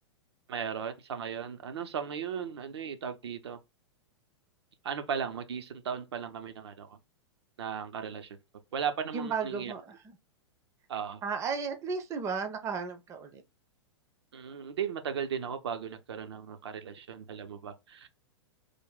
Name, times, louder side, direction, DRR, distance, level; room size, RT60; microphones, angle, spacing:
voice 1, 0.5-3.6 4.8-7.0 7.6-8.4 8.7-9.7 10.9-11.2 14.3-18.1, right 7 dB, 65° right, 0.6 m, -36 dB
voice 2, 9.1-10.0 11.2-13.4, right 5 dB, 20° right, 0.5 m, -34 dB
3.3 x 2.2 x 3.8 m
figure-of-eight pair, 100°, 15 cm